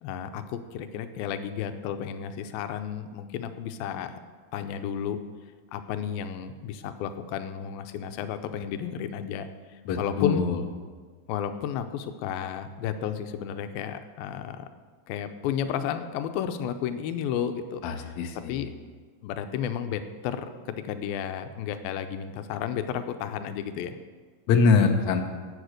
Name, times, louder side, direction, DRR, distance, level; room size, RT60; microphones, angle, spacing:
voice 1, 0.0-4.2 4.5-5.2 5.7-10.5 11.3-14.7 15.1-18.1 18.5-18.7 19.2-24.0, left 8 dB, 90° left, 9 dB, 2.5 m, -32 dB
voice 2, 9.9-10.6 17.8-18.7 24.5-25.2, left 5 dB, 70° left, 4 dB, 1.9 m, -23 dB
11.5 x 8.8 x 6.4 m, 1.5 s
omnidirectional pair, 4.2 m